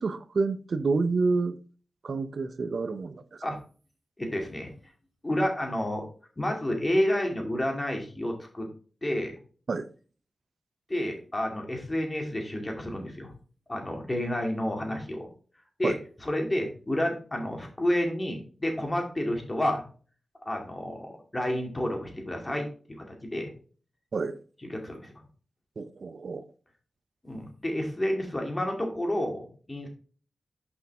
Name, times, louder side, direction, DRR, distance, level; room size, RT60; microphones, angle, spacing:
voice 1, 0.0-1.6 2.0-3.2 9.7-9.9 15.8-15.9 24.1-24.4 25.8-26.4, right 4 dB, 65° right, 0.6 m, -28 dB
voice 2, 4.2-4.7 5.2-6.1 6.4-8.7 9.0-9.4 10.9-13.3 13.7-15.3 15.8-15.9 16.2-19.8 20.5-23.5 24.7-25.1 27.2-29.9, left 1 dB, 25° left, 2.3 m, -30 dB
6.1 x 5.5 x 3.5 m
cardioid pair, 65°, 0 cm